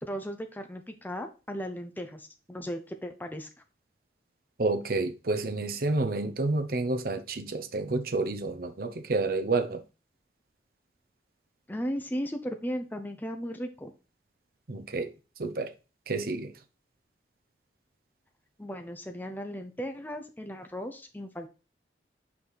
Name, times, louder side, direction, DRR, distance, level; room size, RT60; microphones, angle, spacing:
voice 1, 0.0-3.5 11.7-13.9 18.6-21.5, equal, 10° left, 0.7 m, -36 dB
voice 2, 4.6-9.8 14.7-15.7 16.1-16.5, right 3 dB, 55° right, 0.8 m, -29 dB
5.8 x 4.9 x 4.0 m
head